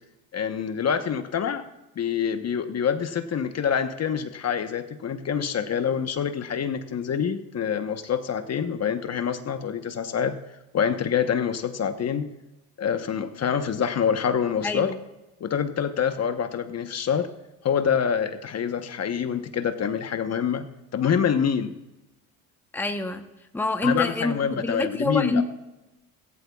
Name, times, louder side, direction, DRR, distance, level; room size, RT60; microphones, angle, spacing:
voice 1, 0.3-1.7 2.0-10.3 10.7-12.3 12.8-14.9 15.4-17.3 17.6-20.6 20.9-21.7 23.8-25.4, left 7 dB, 40° left, 8 dB, 1.1 m, -26 dB
voice 2, 14.6-15.0 22.7-23.2 23.5-25.4, left 2 dB, 5° left, 6 dB, 1.0 m, -26 dB
15.5 x 15.5 x 2.4 m, 0.99 s
supercardioid pair, 85°, 40 cm